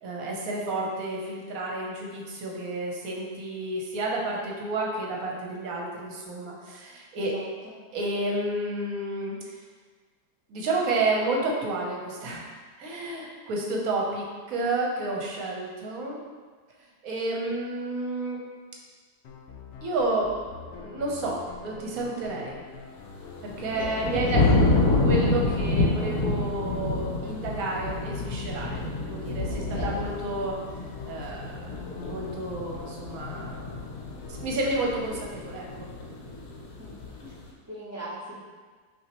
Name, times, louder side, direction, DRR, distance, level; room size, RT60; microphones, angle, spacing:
voice 1, 0.0-7.3 7.9-9.6 10.5-12.5 12.8-16.2 17.0-18.4 19.8-20.3 20.7-22.7 23.4-24.6 25.0-30.6 31.0-31.8 32.1-33.7 34.3-35.9, right 2 dB, 65° right, -2 dB, 1.1 m, -30 dB
voice 2, 7.2-7.8 23.7-25.2 29.5-30.0 36.8-36.9 37.2-38.4, equal, 20° right, -10 dB, 0.4 m, -40 dB
sound 1, 19.2-35.3, left 5 dB, 85° left, 0.6 m, -45 dB
sound 2, 23.2-37.4, left 2 dB, 65° left, 1.0 m, -28 dB
5.7 x 2.8 x 2.9 m, 1.5 s
omnidirectional pair, 1.8 m